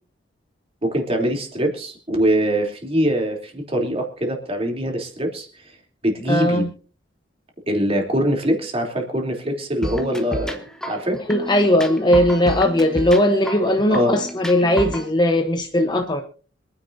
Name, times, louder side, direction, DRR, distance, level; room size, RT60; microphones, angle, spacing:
voice 1, 0.8-5.5 6.0-6.6 7.7-10.6 10.9-11.2 13.9-14.2, equal, 30° right, 2 dB, 3.2 m, -23 dB
voice 2, 6.3-6.7 11.3-16.2, left 1 dB, 25° left, 5 dB, 0.9 m, -18 dB
sound 1, 9.8-15.1, equal, 5° left, 1.6 m, -31 dB
26.0 x 9.9 x 2.7 m, 0.38 s
head